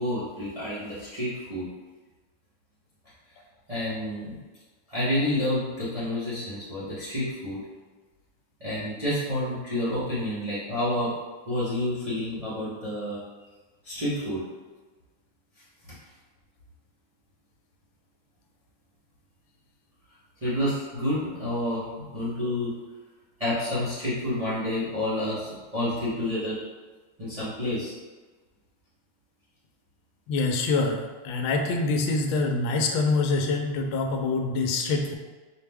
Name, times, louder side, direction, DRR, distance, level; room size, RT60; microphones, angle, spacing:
voice 1, 0.0-1.7 3.7-4.4 4.9-7.6 8.6-11.1 11.4-13.2 13.8-14.4 20.4-21.8 22.1-22.7 23.4-26.6 27.2-27.9, left 1 dB, 45° right, -11 dB, 0.4 m, -29 dB
voice 2, 30.3-35.1, left 3 dB, 80° left, 2 dB, 1.3 m, -25 dB
4.7 x 2.2 x 3.4 m, 1.3 s
omnidirectional pair, 2.2 m